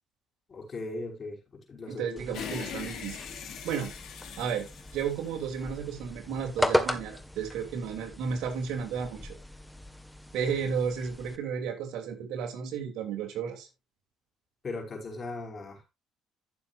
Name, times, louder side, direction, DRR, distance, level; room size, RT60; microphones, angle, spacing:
voice 1, 0.5-2.3 14.6-15.8, left 2 dB, 40° left, 5.3 m, -38 dB
voice 2, 1.9-3.2 3.6-3.9 4.4-4.7 4.9-9.3 10.3-13.7, right 6 dB, 70° right, 3.1 m, -33 dB
sound 1, 2.2-11.4, left 1 dB, 5° left, 1.6 m, -36 dB
sound 2, 2.3-5.8, left 8 dB, 70° left, 3.2 m, -41 dB
15.0 x 7.0 x 2.6 m
supercardioid pair, 75°, 0 cm